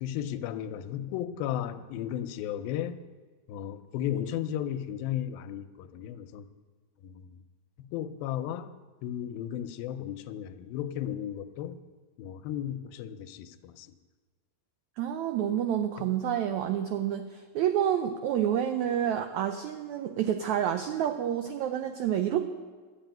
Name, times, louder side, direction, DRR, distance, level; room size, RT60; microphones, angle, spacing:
voice 1, 0.0-3.0 3.5-6.5 7.0-7.3 7.8-8.7 9.0-11.8 12.2-14.0 16.0-16.1, left 10 dB, 90° left, 10 dB, 2.5 m, -35 dB
voice 2, 15.0-22.5, right 10 dB, 85° right, 7 dB, 1.6 m, -29 dB
12.5 x 7.7 x 9.1 m, 1.5 s
omnidirectional pair, 4.1 m